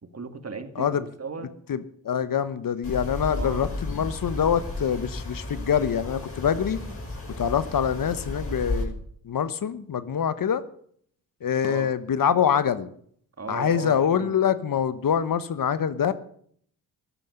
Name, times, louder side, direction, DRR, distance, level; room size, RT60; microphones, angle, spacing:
voice 1, 0.0-1.5 3.2-3.7 7.4-7.6 11.6-11.9 13.4-14.3, right 4 dB, 40° right, 8 dB, 2.2 m, -36 dB
voice 2, 1.7-6.8 7.4-9.0 9.2-10.6 11.4-12.9 13.5-16.1, left 8 dB, 55° left, 14 dB, 1.0 m, -25 dB
sound 1, 2.8-8.8, left 2 dB, 35° left, 6.2 m, -33 dB
13.5 x 11.5 x 6.7 m, 0.63 s
supercardioid pair, 50°, 40 cm